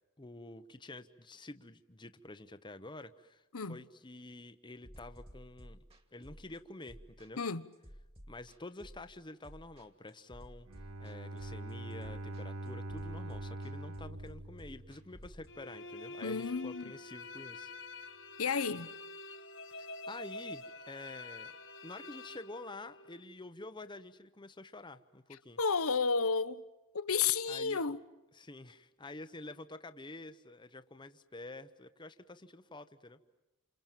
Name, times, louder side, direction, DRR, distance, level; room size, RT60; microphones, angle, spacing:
voice 1, 0.2-5.8 6.1-7.4 8.3-10.7 11.0-17.7 19.7-21.5 21.8-25.6 27.5-27.8 28.3-33.2, left 2 dB, 20° left, 0.9 m, -48 dB
sound 1, 4.8-15.5, equal, 25° right, 2.5 m, -54 dB
Bowed string instrument, 10.7-15.5, right 1 dB, 75° right, 0.9 m, -43 dB
sound 2, 15.5-23.2, left 2 dB, 60° left, 1.6 m, -47 dB
voice 2, 16.2-16.9 18.4-18.9 25.6-26.6 26.9-28.0, left 5 dB, 75° left, 1.0 m, -32 dB
28.5 x 27.5 x 7.5 m
head